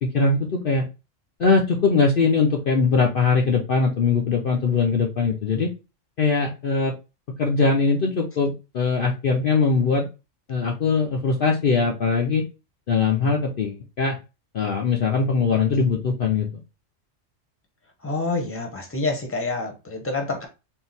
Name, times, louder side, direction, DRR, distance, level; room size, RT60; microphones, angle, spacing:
voice 1, 0.0-0.9 1.4-5.7 6.2-6.9 7.4-10.1 10.5-12.4 12.9-14.2 14.5-16.6, left 4 dB, 55° left, 0.8 m, -21 dB
voice 2, 18.0-20.5, left 3 dB, 10° left, 0.9 m, -27 dB
3.8 x 2.6 x 4.0 m
omnidirectional pair, 1.3 m